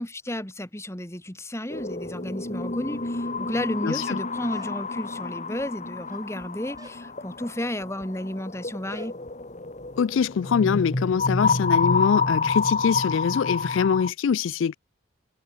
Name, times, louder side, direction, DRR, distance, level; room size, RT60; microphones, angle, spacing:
voice 1, 0.0-9.2, left 1 dB, 15° left, 2.2 m, -32 dB
sound 1, 1.7-14.1, left 4 dB, 35° left, 1.9 m, -28 dB
voice 2, 3.8-4.2 10.0-14.7, left 6 dB, 70° left, 0.3 m, -24 dB
sound 2, 4.4-5.1 6.0-6.4 6.8-7.1 8.9-9.2, right 2 dB, 15° right, 4.2 m, -50 dB
head